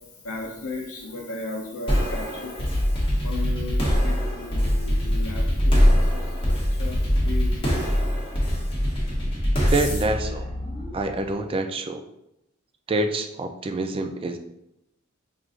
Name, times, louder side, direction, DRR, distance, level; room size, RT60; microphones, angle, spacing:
voice 1, 0.2-2.5 3.2-8.1, left 2 dB, 80° left, -1 dB, 0.6 m, -36 dB
sound 1, 1.9-11.3, equal, 25° left, 0.8 m, -23 dB
voice 2, 9.7-10.5 10.9-12.0 12.9-14.4, right 2 dB, 25° right, 7 dB, 0.3 m, -26 dB
5.9 x 2.5 x 2.4 m, 0.84 s
head